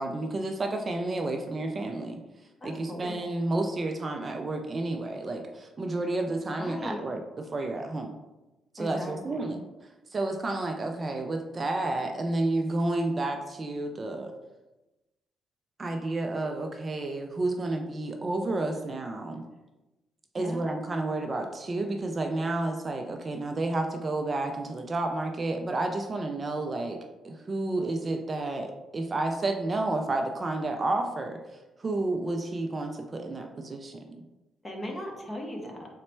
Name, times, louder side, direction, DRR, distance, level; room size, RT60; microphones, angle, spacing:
voice 1, 0.0-2.2 2.6-8.1 8.7-9.6 10.1-14.3 15.8-19.5 20.3-27.0 27.2-31.4 31.8-34.2, right 2 dB, 35° right, 4 dB, 0.3 m, -31 dB
voice 2, 2.6-3.2 6.6-7.0 8.8-9.5 20.4-20.6 34.6-35.9, left 1 dB, 20° left, 0 dB, 0.9 m, -38 dB
4.0 x 2.1 x 4.3 m, 1.1 s
cardioid pair, 90°, 0 cm